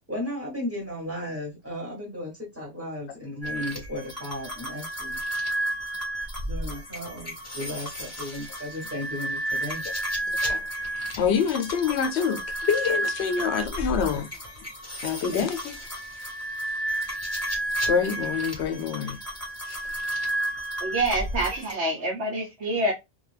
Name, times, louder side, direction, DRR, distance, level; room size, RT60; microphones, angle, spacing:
voice 1, 0.1-5.2 6.5-9.8 15.3-15.4, left 1 dB, 10° right, 1.1 m, -35 dB
sound 1, 3.4-21.7, right 1 dB, 15° left, 0.9 m, -32 dB
voice 2, 11.1-14.5 15.0-15.8 17.9-19.2 19.7-19.8, left 7 dB, 70° left, 0.8 m, -26 dB
voice 3, 20.8-22.9, right 1 dB, 70° right, 1.0 m, -26 dB
2.6 x 2.3 x 3.2 m
omnidirectional pair, 1.2 m